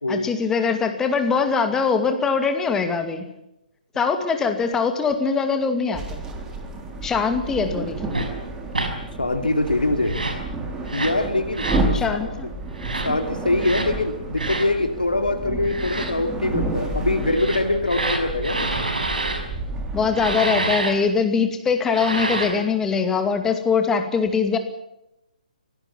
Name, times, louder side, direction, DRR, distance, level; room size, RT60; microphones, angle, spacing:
voice 1, 0.1-3.3 4.0-6.2 7.0-8.0 11.9-12.5 19.9-24.6, left 5 dB, 10° left, 7 dB, 2.4 m, -22 dB
sound 1, 5.9-20.4, right 2 dB, 15° right, 3.5 m, -30 dB
sound 2, 8.1-8.3 8.7-8.9 10.0-10.4 10.9-11.2 11.5-11.9 12.8-13.1 13.6-13.9 14.4-14.7 15.6-16.1 17.2-19.4 20.1-20.9 21.8-22.6, right 2 dB, 70° right, 5.6 m, -27 dB
voice 2, 9.2-10.2 10.9-11.7 13.0-18.7, left 2 dB, 75° left, 5 dB, 2.6 m, -23 dB
25.0 x 18.0 x 7.3 m, 0.87 s
figure-of-eight pair, 130°, 5 cm